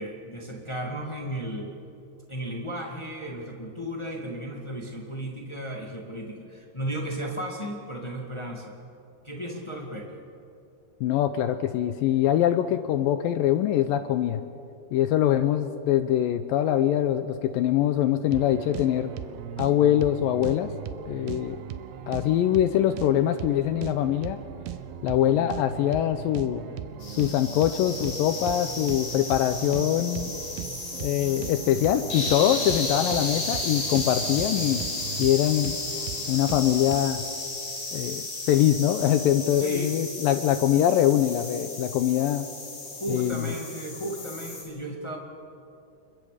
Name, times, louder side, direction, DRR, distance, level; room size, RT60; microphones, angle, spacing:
voice 1, 0.0-1.7 2.3-8.7 9.2-10.2 39.6-40.0 42.9-45.2, right 1 dB, 30° left, 0 dB, 0.5 m, -34 dB
voice 2, 11.0-14.4 14.9-19.1 19.6-20.7 21.1-21.6 22.1-24.4 25.0-26.6 27.1-30.3 30.9-34.8 35.2-35.7 36.3-37.2 37.9-42.5 43.1-43.5, left 11 dB, 80° left, 10 dB, 2.1 m, -23 dB
sound 1, 18.3-37.0, right 10 dB, 85° right, 2.9 m, -38 dB
sound 2, 27.0-44.6, left 2 dB, 55° left, 6.3 m, -34 dB
29.0 x 23.0 x 5.0 m, 2.6 s
omnidirectional pair, 4.6 m